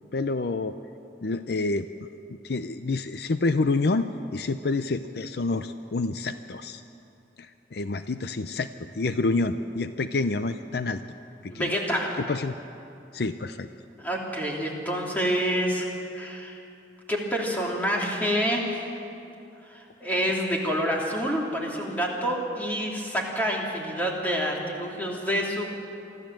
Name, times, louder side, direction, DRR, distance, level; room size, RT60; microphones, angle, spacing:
voice 1, 0.1-0.8 1.2-1.9 2.4-6.8 7.4-11.0 11.4-11.7 12.2-12.5 13.1-13.7, left 3 dB, 65° left, 10 dB, 0.6 m, -28 dB
voice 2, 11.5-12.2 14.0-15.9 16.1-16.6 17.1-18.9 19.7-25.8, equal, 10° left, -2 dB, 2.9 m, -27 dB
24.5 x 14.0 x 7.6 m, 2.7 s
head